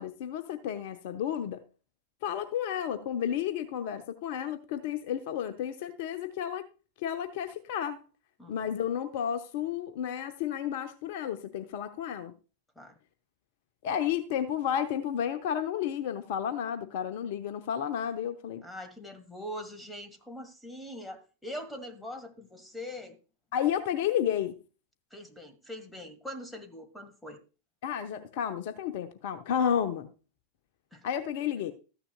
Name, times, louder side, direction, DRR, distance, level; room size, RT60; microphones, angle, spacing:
voice 1, 0.0-1.6 2.2-6.7 7.0-8.0 8.5-12.3 13.8-18.6 23.5-24.6 27.8-30.1 31.0-31.7, left 9 dB, 50° left, 0.8 m, -32 dB
voice 2, 18.6-23.2 25.1-27.4 30.9-31.0, equal, 5° left, 1.6 m, -42 dB
13.5 x 9.9 x 2.2 m
figure-of-eight pair, 90°, 0 cm